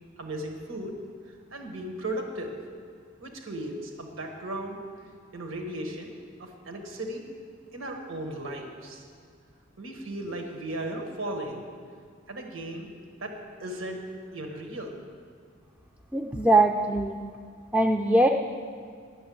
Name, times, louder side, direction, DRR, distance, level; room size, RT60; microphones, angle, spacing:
voice 1, 0.2-1.0 1.5-2.5 3.2-4.8 5.3-6.1 6.4-7.3 7.7-9.0 9.8-11.6 12.3-12.9 13.2-14.0 14.3-14.9, right 1 dB, 85° right, 3 dB, 1.5 m, -36 dB
voice 2, 16.1-17.2 17.7-18.3, right 2 dB, 5° right, 1 dB, 0.4 m, -21 dB
10.0 x 6.8 x 9.3 m, 2.2 s
head